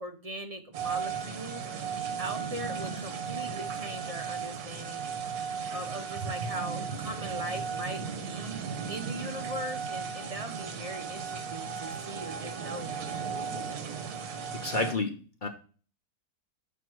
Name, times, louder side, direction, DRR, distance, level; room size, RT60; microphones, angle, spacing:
voice 1, 0.0-1.6 2.2-5.0 5.7-12.9, right 1 dB, 40° right, 5 dB, 0.5 m, -40 dB
sound 1, 0.7-14.9, right 6 dB, 75° right, 1.4 m, -36 dB
voice 2, 14.3-15.5, left 3 dB, 35° left, 4 dB, 0.9 m, -32 dB
6.4 x 5.1 x 4.5 m, 0.38 s
omnidirectional pair, 1.7 m